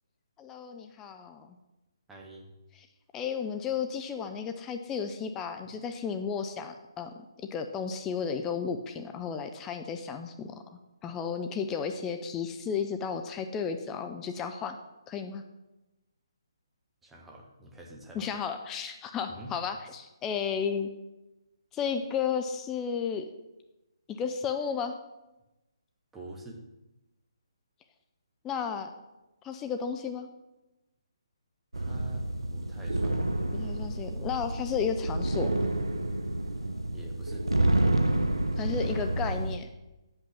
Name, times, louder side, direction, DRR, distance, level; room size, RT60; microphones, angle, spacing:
voice 1, 0.4-1.6 3.1-7.1 7.5-10.5 11.0-14.8 15.1-15.4 18.1-20.9 21.7-23.2 24.1-25.0 28.4-28.9 29.4-30.3 33.5-35.6 38.6-39.7, left 6 dB, 15° left, 6 dB, 0.4 m, -33 dB
voice 2, 2.1-2.5 17.0-18.3 19.3-19.6 26.1-26.6 31.7-33.1 36.9-37.5, right 2 dB, 5° right, -2 dB, 1.1 m, -45 dB
sound 1, 31.7-39.6, right 1 dB, 85° right, 0.7 m, -29 dB
8.3 x 5.5 x 5.7 m, 1.0 s
figure-of-eight pair, 140°, 3 cm